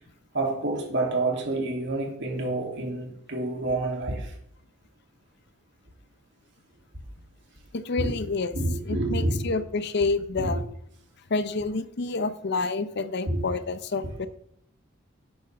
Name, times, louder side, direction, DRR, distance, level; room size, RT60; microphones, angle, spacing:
voice 1, 0.3-4.3 8.0-8.1 8.5-9.6 10.4-10.6 13.3-13.4, right 2 dB, 65° right, 2.8 m, -28 dB
voice 2, 7.7-8.5 8.8-10.6 11.3-14.3, left 3 dB, 60° left, 0.7 m, -28 dB
11.5 x 8.8 x 3.5 m
head